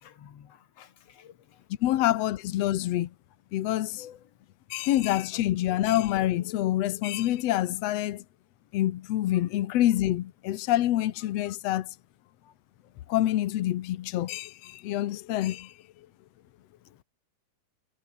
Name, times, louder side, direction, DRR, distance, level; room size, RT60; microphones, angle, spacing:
voice 1, 0.0-1.3 4.0-4.2 4.8-4.9 11.5-11.6, left 9 dB, 50° left, 2.4 m, -51 dB
voice 2, 1.8-3.1 3.5-4.1 4.7-8.2 8.7-11.9 13.1-15.7, left 14 dB, 80° left, 1.4 m, -26 dB
omnidirectional pair, 4.2 m